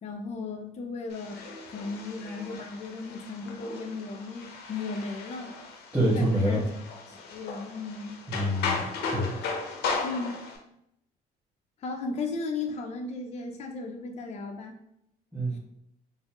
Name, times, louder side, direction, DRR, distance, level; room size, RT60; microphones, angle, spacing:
voice 1, 0.0-1.4 1.7-5.5 6.1-6.7 7.1-8.2 10.0-10.3 11.8-14.7 15.5-15.6, left 3 dB, 40° left, 3 dB, 0.5 m, -35 dB
sound 1, 1.1-10.6, left 4 dB, 75° left, 0.7 m, -36 dB
voice 2, 5.9-6.6 8.3-8.8 9.1-9.3 15.3-15.6, equal, 5° right, -11 dB, 1.4 m, -26 dB
4.1 x 2.0 x 3.0 m, 0.78 s
cardioid pair, 110°, 17 cm